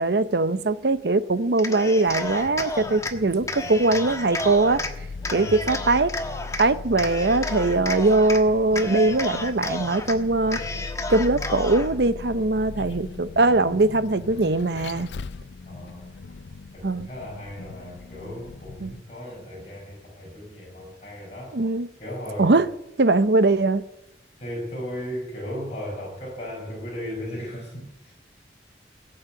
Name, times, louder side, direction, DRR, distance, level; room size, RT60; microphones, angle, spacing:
voice 1, 0.0-4.8 5.3-6.1 6.6-10.6 11.1-15.1 16.8-17.1 18.8-18.9 21.5-21.9 22.4-22.7 23.0-23.8, right 2 dB, 70° right, 0.8 m, -21 dB
Cheering, 1.5-3.1 3.5-4.9 5.2-6.6 7.0-8.4 8.7-10.1 10.5-11.9, left 2 dB, 20° left, 1.3 m, -31 dB
Vehicle, 2.1-19.0, left 4 dB, 85° left, 0.5 m, -39 dB
voice 2, 5.4-5.8 15.7-16.1 16.7-21.6 22.0-22.5 24.4-28.1, equal, 35° left, 5.4 m, -36 dB
17.0 x 8.8 x 9.6 m
head